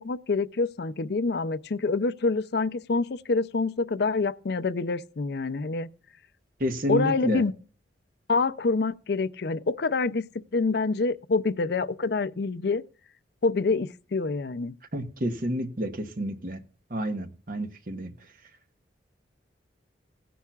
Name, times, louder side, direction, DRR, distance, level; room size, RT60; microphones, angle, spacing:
voice 1, 0.0-5.9 6.9-7.5 8.3-10.2 10.5-12.8 13.4-14.7, left 3 dB, 55° left, 0.5 m, -26 dB
voice 2, 6.6-7.4 14.9-16.6 16.9-18.1, equal, 45° right, 1.1 m, -30 dB
17.0 x 10.0 x 2.4 m
head